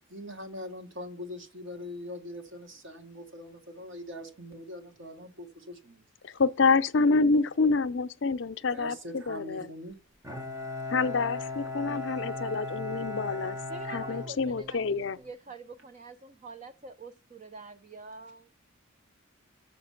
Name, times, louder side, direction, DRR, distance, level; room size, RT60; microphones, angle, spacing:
voice 1, 0.1-6.0 8.7-10.0, left 1 dB, 60° right, 1.4 m, -42 dB
voice 2, 6.2-9.7 10.9-13.6 13.9-15.2, left 4 dB, 60° left, 0.5 m, -27 dB
Bowed string instrument, 10.2-15.1, left 2 dB, 15° right, 0.8 m, -37 dB
voice 3, 13.7-18.5, right 3 dB, 35° right, 0.4 m, -46 dB
7.4 x 5.0 x 7.0 m
head